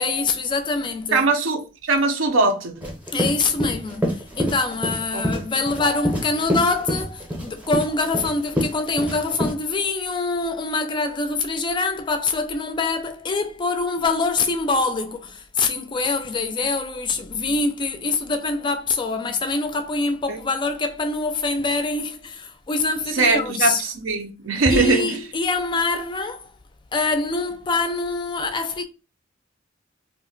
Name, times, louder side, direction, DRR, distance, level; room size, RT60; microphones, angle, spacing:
voice 1, 0.0-1.2 3.1-23.8 24.7-26.5 26.9-28.8, left 3 dB, 25° left, 0.3 m, -24 dB
voice 2, 1.1-2.8 5.1-5.4 20.3-20.4 23.1-25.2, right 3 dB, 75° right, 0.6 m, -21 dB
sound 1, 2.8-9.5, equal, 10° right, 0.7 m, -26 dB
2.5 x 2.1 x 3.7 m
head